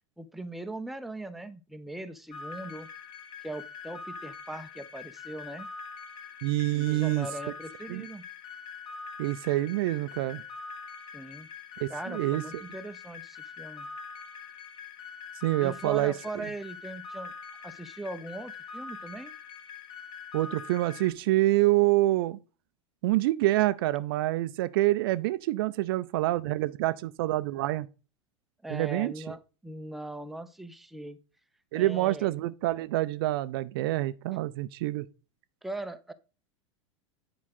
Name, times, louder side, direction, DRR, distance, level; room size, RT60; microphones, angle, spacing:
voice 1, 0.2-2.9 3.4-5.7 6.7-8.2 11.1-11.5 11.9-13.9 15.6-17.3 17.6-19.3 28.6-31.2 31.7-32.3 34.3-34.4 35.6-36.1, right 2 dB, ahead, 0.5 m, -40 dB
sound 1, 2.3-21.1, left 5 dB, 35° left, 1.6 m, -44 dB
voice 2, 6.4-7.3 7.9-8.1 9.2-10.4 11.8-12.4 15.4-16.1 20.3-22.4 23.0-27.9 28.7-29.1 31.7-35.1, right 17 dB, 45° right, 0.4 m, -26 dB
9.4 x 4.9 x 4.1 m
figure-of-eight pair, 85°, 16 cm